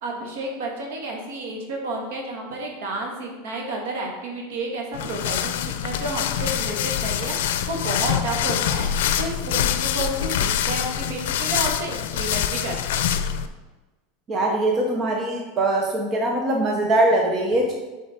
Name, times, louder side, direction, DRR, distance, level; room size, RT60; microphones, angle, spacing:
voice 1, 0.0-13.0, right 2 dB, 70° right, 0 dB, 1.9 m, -31 dB
sound 1, 4.9-13.5, left 10 dB, 80° left, 0.5 m, -25 dB
voice 2, 14.3-17.7, right 1 dB, 25° right, 0 dB, 0.8 m, -22 dB
8.0 x 4.9 x 4.4 m, 1.2 s
supercardioid pair, 165°, 0 cm